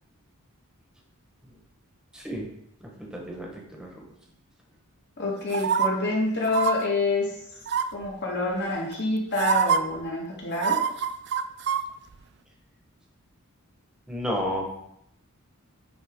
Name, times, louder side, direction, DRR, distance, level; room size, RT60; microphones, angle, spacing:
voice 1, 2.1-2.5 3.0-4.0 14.1-14.7, equal, 5° right, -1 dB, 1.3 m, -32 dB
voice 2, 5.2-7.3 7.9-10.8, left 3 dB, 50° left, -3 dB, 2.0 m, -27 dB
sound 1, 5.5-5.9 6.5-6.7 7.7-8.1 8.9-9.0 9.4-9.8 10.5-11.8 12.1-12.2, right 7 dB, 50° right, 0.4 m, -24 dB
9.5 x 3.7 x 3.7 m, 0.76 s
head